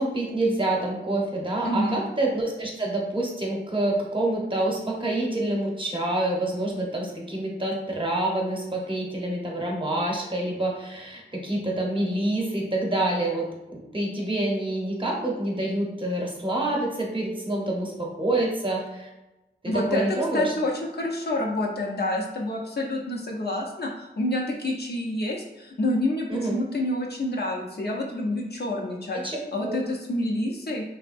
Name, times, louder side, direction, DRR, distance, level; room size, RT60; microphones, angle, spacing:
voice 1, 0.0-19.1 19.6-20.5 26.3-26.6 29.1-29.8, right 1 dB, 25° right, -2 dB, 0.9 m, -27 dB
voice 2, 1.6-2.0 19.7-20.0 20.3-29.2 29.5-30.8, left 1 dB, 60° left, -1 dB, 0.6 m, -28 dB
3.3 x 2.1 x 2.5 m, 1.0 s
cardioid pair, 45°, 19 cm